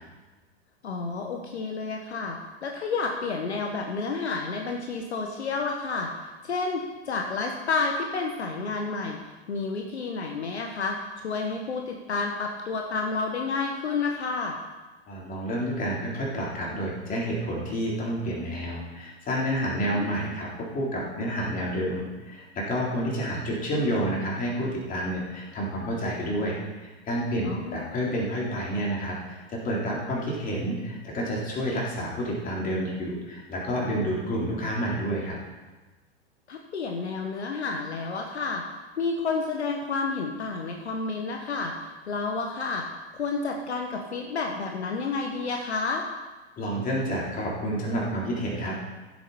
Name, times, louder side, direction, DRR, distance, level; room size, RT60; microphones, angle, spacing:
voice 1, 0.8-6.1 6.4-9.2 9.5-11.0 11.2-14.6 19.8-20.1 27.4-27.8 36.5-38.6 39.0-42.9 43.1-46.1, left 4 dB, 70° left, 2 dB, 1.4 m, -30 dB
voice 2, 15.1-26.6 26.8-35.4 46.6-48.9, equal, 25° left, -4 dB, 3.9 m, -29 dB
16.0 x 8.0 x 4.3 m, 1.2 s
figure-of-eight pair, 100°, 34 cm